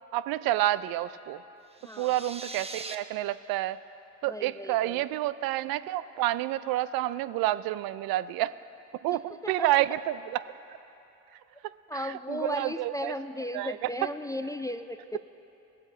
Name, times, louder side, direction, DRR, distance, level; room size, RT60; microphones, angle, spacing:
voice 1, 0.1-1.4 2.0-3.8 4.2-8.5 9.0-10.4 11.6-13.1 13.5-13.8, right 15 dB, 70° right, 16 dB, 0.5 m, -29 dB
sound 1, 1.7-3.0, right 2 dB, 15° right, 0.8 m, -41 dB
voice 2, 1.8-2.1 4.3-5.0 9.4-9.7 11.9-15.2, left 1 dB, 10° left, 9 dB, 0.4 m, -35 dB
19.0 x 7.8 x 4.3 m, 2.9 s
hypercardioid pair, 60°, 37 cm